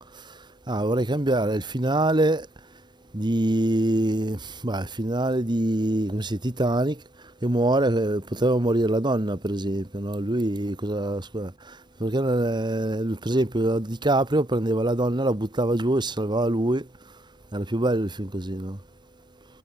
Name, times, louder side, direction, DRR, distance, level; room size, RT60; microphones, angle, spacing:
voice 1, 0.1-2.5 3.1-16.9 17.5-18.8, right 1 dB, 25° right, 1.4 m, -25 dB
head